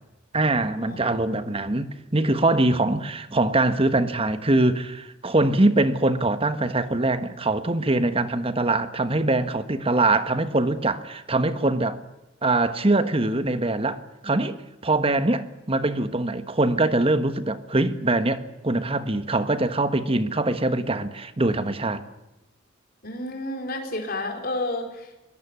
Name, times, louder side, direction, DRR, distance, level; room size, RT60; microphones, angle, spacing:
voice 1, 0.3-12.0 12.4-14.6 14.8-22.0, right 2 dB, 30° right, 1.3 m, -23 dB
voice 2, 23.0-25.1, left 2 dB, 50° left, 4.5 m, -31 dB
22.5 x 18.5 x 9.6 m
head